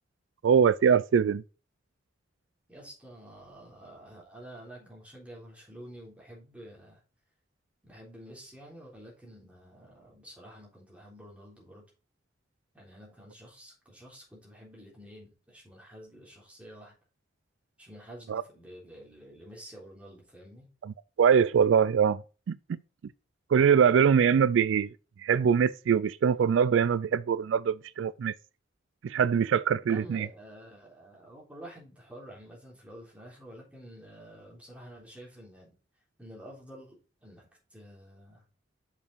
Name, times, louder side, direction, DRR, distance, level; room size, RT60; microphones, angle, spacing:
voice 1, 0.4-1.4 18.3-18.4 21.2-22.2 22.5-22.6 23.5-24.9 25.2-28.3 29.0-30.3, right 7 dB, 80° right, 0.3 m, -23 dB
voice 2, 2.7-7.0 7.8-11.8 12.7-16.9 17.8-20.7 29.8-35.7 36.2-38.4, equal, 5° right, 3.5 m, -49 dB
6.6 x 5.9 x 4.0 m
head